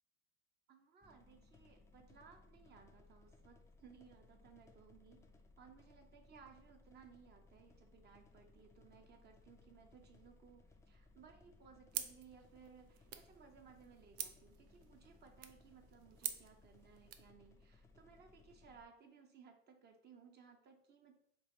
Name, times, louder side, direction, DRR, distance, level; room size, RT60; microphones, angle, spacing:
voice 1, 0.7-5.2 5.6-21.1, right 6 dB, 30° right, 4 dB, 0.6 m, -62 dB
sound 1, 1.0-18.9, left 2 dB, 10° left, 0.3 m, -65 dB
sound 2, 11.9-17.3, right 10 dB, 80° right, 0.5 m, -48 dB
3.3 x 2.4 x 4.2 m, 0.74 s
supercardioid pair, 100°, 32 cm